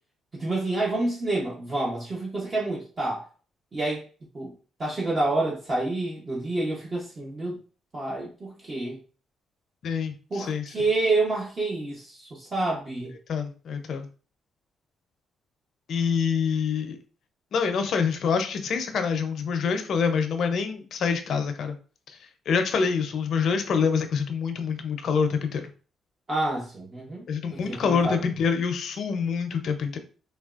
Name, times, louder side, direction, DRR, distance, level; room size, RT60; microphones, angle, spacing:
voice 1, 0.3-3.2 3.7-4.1 4.3-4.5 4.8-7.6 7.9-9.0 10.3-13.2 26.3-27.2 27.5-28.3, right 2 dB, 35° right, -4 dB, 0.8 m, -28 dB
voice 2, 9.8-10.6 13.3-14.1 15.9-17.0 17.5-21.8 22.5-25.6 27.3-30.0, left 6 dB, 65° left, 7 dB, 0.5 m, -26 dB
3.3 x 2.2 x 2.4 m, 0.38 s
cardioid pair, 90°, 0 cm